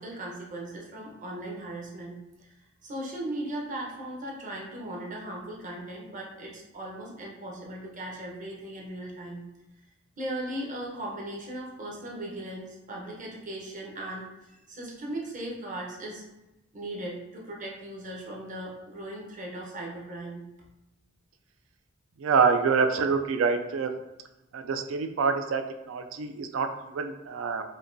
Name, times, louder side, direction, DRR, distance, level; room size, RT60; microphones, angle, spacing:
voice 1, 0.0-2.5 2.8-9.4 10.2-16.2 16.7-20.4, right 1 dB, 40° right, -2 dB, 0.8 m, -38 dB
voice 2, 22.2-23.9 24.5-27.6, right 5 dB, 70° right, 6 dB, 0.3 m, -26 dB
5.0 x 2.2 x 2.6 m, 0.96 s
head